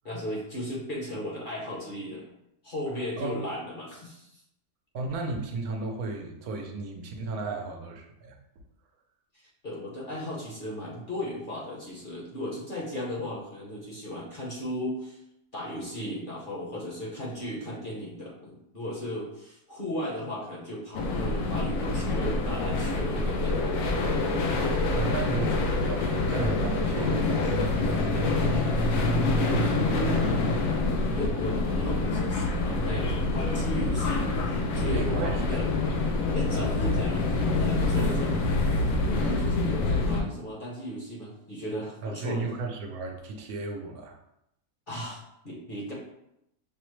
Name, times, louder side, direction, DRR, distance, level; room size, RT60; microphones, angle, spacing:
voice 1, 0.0-2.3 2.6-4.3 9.6-15.2 15.5-23.7 29.7-30.5 31.2-35.7 36.3-38.3 39.0-42.5 44.9-45.9, equal, 40° left, -4 dB, 0.9 m, -36 dB
voice 2, 4.9-8.4 24.9-28.9 29.4-30.1 34.9-36.3 37.9-38.5 42.0-44.2, right 3 dB, 75° right, 2 dB, 1.1 m, -35 dB
sound 1, 20.9-40.2, left 3 dB, 70° left, 1.0 m, -26 dB
sound 2, 26.9-31.6, right 1 dB, 55° right, 1.0 m, -34 dB
5.5 x 2.0 x 3.1 m, 0.80 s
omnidirectional pair, 1.6 m